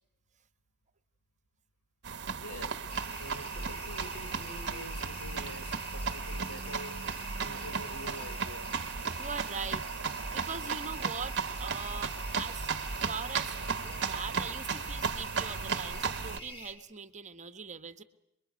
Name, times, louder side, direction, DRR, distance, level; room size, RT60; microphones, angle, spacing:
sound 1, 2.0-16.4, right 5 dB, 50° right, 1.3 m, -35 dB
voice 1, 2.4-7.0 7.4-8.7, equal, 80° left, 6 dB, 5.1 m, -46 dB
sound 2, 2.9-16.7, left 1 dB, 25° left, 5.3 m, -46 dB
voice 2, 9.2-9.8 10.3-12.7 13.0-13.6 14.0-18.0, right 5 dB, 35° right, 10 dB, 1.5 m, -41 dB
27.5 x 23.0 x 9.5 m, 0.80 s
head